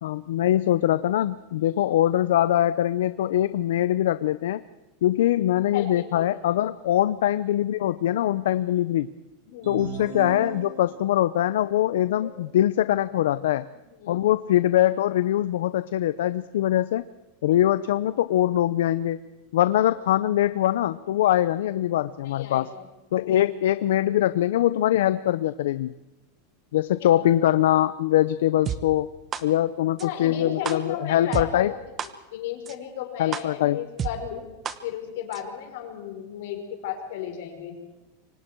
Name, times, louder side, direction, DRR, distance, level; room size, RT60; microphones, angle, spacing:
voice 1, 0.0-4.6 5.0-9.1 9.7-13.7 14.1-17.0 17.4-19.2 19.5-22.7 23.1-25.9 26.7-29.1 29.4-31.7 33.2-33.8, left 12 dB, 75° left, 14 dB, 0.7 m, -23 dB
voice 2, 5.7-6.3 9.5-9.9 12.2-12.3 14.0-14.3 22.2-22.9 23.1-23.4 26.9-27.1 30.0-31.7 32.3-34.5 34.8-37.8, left 9 dB, 60° left, 3 dB, 5.7 m, -35 dB
sound 1, 9.6-11.2, right 7 dB, 50° right, 4.6 m, -36 dB
sound 2, 28.7-28.8 29.3-29.4 30.0-30.1 30.7-30.8 31.3-31.4 32.0-32.1 32.7-32.8 33.3-33.4 34.0-34.1 34.7-34.8 35.3-35.4, right 8 dB, 20° right, 1.1 m, -28 dB
28.0 x 25.0 x 4.7 m, 1.1 s
supercardioid pair, 170°, 0 cm